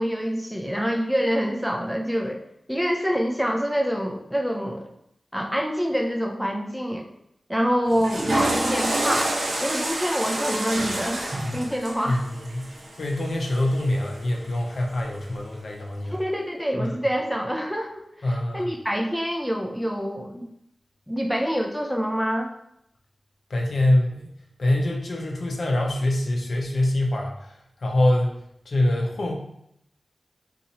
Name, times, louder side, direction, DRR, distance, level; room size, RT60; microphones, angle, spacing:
voice 1, 0.0-2.4 2.7-4.9 5.3-7.1 7.5-9.3 9.6-12.2 16.1-20.5 21.1-22.5, equal, ahead, 2 dB, 0.3 m, -26 dB
Water / Toilet flush, 7.9-14.1, right 1 dB, 60° right, 0.7 m, -28 dB
voice 2, 12.1-12.7 13.0-16.1 16.8-16.9 18.2-18.7 23.5-24.3 24.6-27.5 27.8-28.3 28.7-29.3, left 1 dB, 65° left, 0 dB, 0.6 m, -24 dB
2.8 x 2.5 x 4.0 m, 0.76 s
wide cardioid pair, 100°, 0 cm